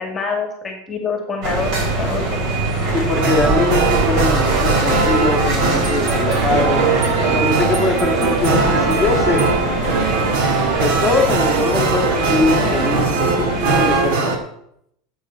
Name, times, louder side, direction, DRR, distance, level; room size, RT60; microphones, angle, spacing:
voice 1, 0.0-2.4, left 5 dB, 15° left, 3 dB, 2.0 m, -26 dB
sound 1, 1.4-14.0, right 2 dB, 45° right, 3.7 m, -22 dB
voice 2, 2.9-9.4 10.8-14.4, left 3 dB, ahead, 0 dB, 2.0 m, -22 dB
sound 2, 3.1-14.4, right 4 dB, 65° right, 2.1 m, -20 dB
12.0 x 7.9 x 5.6 m, 0.73 s
supercardioid pair, 165°, 0 cm